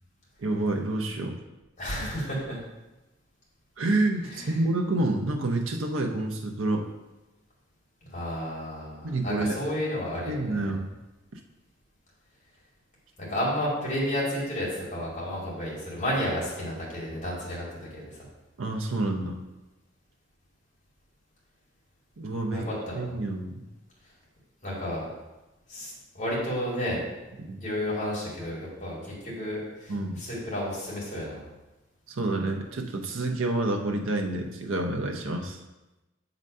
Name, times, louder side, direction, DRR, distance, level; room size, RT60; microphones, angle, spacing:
voice 1, 0.4-1.4 3.8-6.9 9.0-9.6 10.3-10.9 18.6-19.4 22.2-22.7 22.9-23.6 27.4-27.6 29.9-30.2 32.1-35.6, right 2 dB, 85° right, 2 dB, 0.7 m, -28 dB
voice 2, 1.8-2.6 4.3-4.6 8.1-10.7 13.2-18.0 22.5-23.0 24.6-25.0 25.7-27.0 27.6-31.4, equal, 40° left, -6 dB, 2.5 m, -32 dB
7.4 x 4.0 x 5.3 m, 1.0 s
head